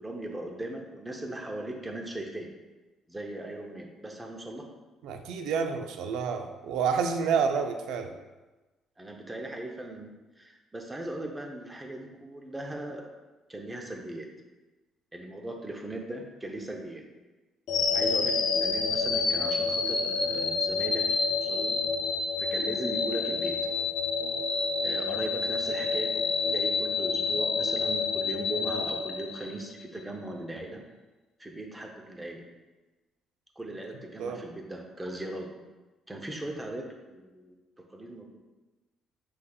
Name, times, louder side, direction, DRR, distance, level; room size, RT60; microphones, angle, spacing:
voice 1, 0.0-2.5 3.1-4.7 9.0-10.1 10.4-13.1 13.5-14.3 15.1-17.0 17.9-21.8 22.4-23.6 24.8-26.2 26.5-30.8 31.4-32.4 33.6-35.5 36.1-37.6 37.9-38.4, right 1 dB, 15° right, 2 dB, 0.7 m, -38 dB
voice 2, 5.0-8.1 34.2-34.4, right 6 dB, 80° right, 6 dB, 0.4 m, -29 dB
sound 1, 17.7-29.8, left 4 dB, 70° left, 0.5 m, -28 dB
5.5 x 3.3 x 2.3 m, 1.2 s
supercardioid pair, 75°, 0 cm